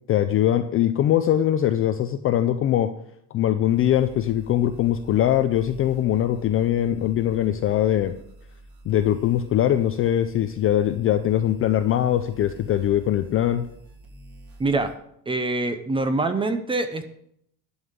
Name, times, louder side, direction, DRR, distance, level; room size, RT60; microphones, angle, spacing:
voice 1, 0.1-2.9 3.3-8.2 8.9-13.7, left 11 dB, 30° left, 8 dB, 0.4 m, -22 dB
sound 1, 3.7-14.9, equal, 50° right, 3.2 m, -48 dB
voice 2, 14.6-14.9 15.3-17.1, right 2 dB, 10° right, 9 dB, 0.6 m, -24 dB
11.0 x 5.6 x 8.0 m, 0.71 s
cardioid pair, 165°, 46 cm